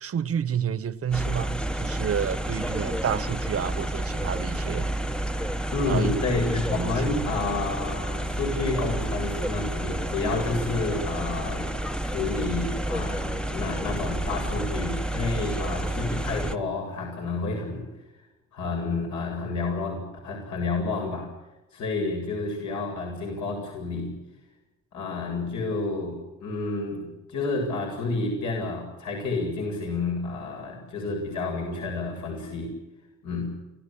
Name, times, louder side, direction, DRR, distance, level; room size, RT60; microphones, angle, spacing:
voice 1, 0.0-4.9 5.9-6.1 6.7-7.2, right 8 dB, 50° right, 1.3 m, -30 dB
sound 1, 1.1-16.6, right 1 dB, 5° left, 1.1 m, -30 dB
voice 2, 5.7-17.9 18.5-21.3 21.7-24.1 24.9-32.7 33.2-33.5, left 3 dB, 70° left, 7.7 m, -30 dB
30.0 x 15.0 x 8.8 m
cardioid pair, 90°, 30 cm